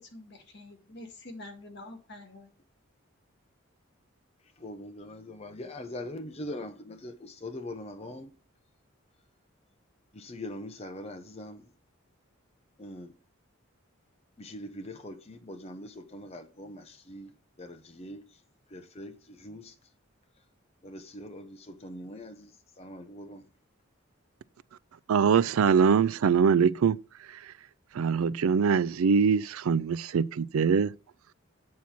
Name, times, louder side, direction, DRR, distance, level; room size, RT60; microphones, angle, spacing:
voice 1, 0.1-2.5, left 2 dB, 55° left, 1.9 m, -46 dB
voice 2, 4.6-8.3 10.1-11.7 12.8-13.1 14.4-17.3 17.6-18.4 18.7-19.7 20.8-23.5, left 1 dB, 30° left, 0.8 m, -42 dB
voice 3, 25.1-27.0 27.3-27.5 27.9-30.9, right 6 dB, 85° right, 0.4 m, -23 dB
8.5 x 4.3 x 6.1 m
head